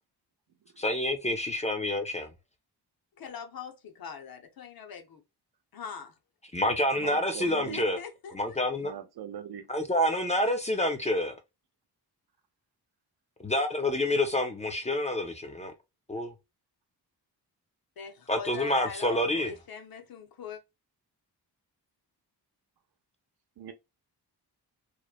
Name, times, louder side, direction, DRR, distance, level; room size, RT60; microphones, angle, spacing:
voice 1, 0.8-2.3 6.5-8.0 8.3-8.9 9.7-11.4 13.4-15.7 16.1-16.3 18.3-19.5, left 1 dB, 20° left, 0.4 m, -28 dB
voice 2, 3.2-5.2 5.7-6.2 7.4-8.3 18.0-20.6, left 6 dB, 60° left, 0.7 m, -42 dB
voice 3, 7.0-7.8 8.8-9.7 23.6-23.7, right 9 dB, 70° right, 0.7 m, -40 dB
3.0 x 2.1 x 2.2 m
wide cardioid pair, 125°, 41 cm